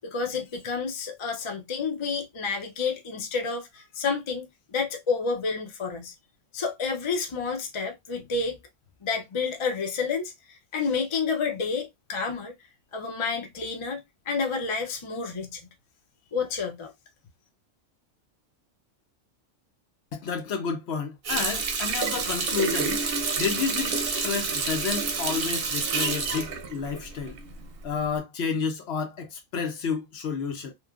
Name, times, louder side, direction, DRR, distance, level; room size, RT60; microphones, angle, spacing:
voice 1, 0.0-6.1 6.5-8.6 9.0-10.3 10.7-12.6 12.9-15.6 16.3-16.9, left 5 dB, 40° left, 0.4 m, -30 dB
voice 2, 20.1-23.0 23.4-27.4 27.8-30.7, left 5 dB, 65° left, 0.7 m, -30 dB
Water tap faucet, 21.2-27.6 28.0-28.2, right 4 dB, 55° right, 0.7 m, -28 dB
3.0 x 2.0 x 2.3 m
omnidirectional pair, 1.3 m